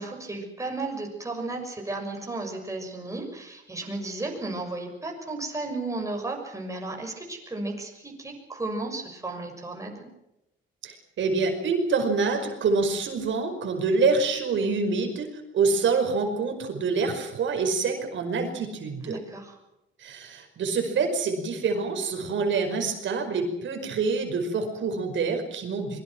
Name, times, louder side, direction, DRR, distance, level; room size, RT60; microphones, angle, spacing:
voice 1, 0.0-10.1 19.0-19.5, right 2 dB, 15° right, 2 dB, 6.4 m, -34 dB
voice 2, 10.8-15.3 15.5-19.2 20.0-26.0, right 4 dB, 65° right, 4 dB, 5.3 m, -26 dB
25.0 x 23.0 x 6.3 m, 0.89 s
cardioid pair, 125°, 21 cm